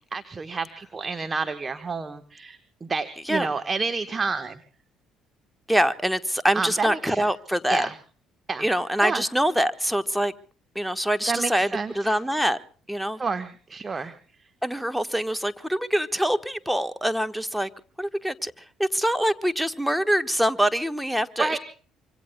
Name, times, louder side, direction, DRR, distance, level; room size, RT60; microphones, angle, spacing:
voice 1, 0.1-4.6 6.5-7.3 7.7-8.0 8.5-8.7 9.0-9.2 11.3-12.2 13.2-14.1 14.4-14.5 21.4-21.6, right 4 dB, 30° right, 1.2 m, -29 dB
voice 2, 5.7-7.9 8.6-10.3 10.7-12.6 12.9-13.2 14.6-17.7 18.0-21.6, equal, ahead, 1.2 m, -24 dB
25.5 x 25.0 x 2.2 m
hypercardioid pair, 50°, 0 cm